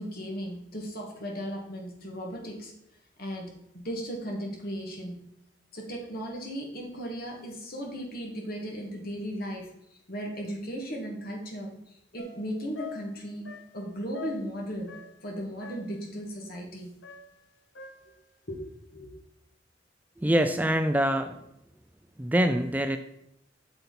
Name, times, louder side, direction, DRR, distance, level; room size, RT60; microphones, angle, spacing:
voice 1, 0.0-2.7 3.2-5.2 5.7-9.7 10.1-13.5 13.7-14.9 15.2-16.9 18.5-18.6 18.9-19.1, equal, 55° left, 0 dB, 2.1 m, -36 dB
sound 1, 12.2-15.3 15.6-16.1 17.0-18.3, left 7 dB, 85° left, 1.0 m, -45 dB
voice 2, 20.2-21.4 22.2-23.0, right 1 dB, 10° right, 8 dB, 0.4 m, -24 dB
8.1 x 6.8 x 4.1 m, 0.79 s
head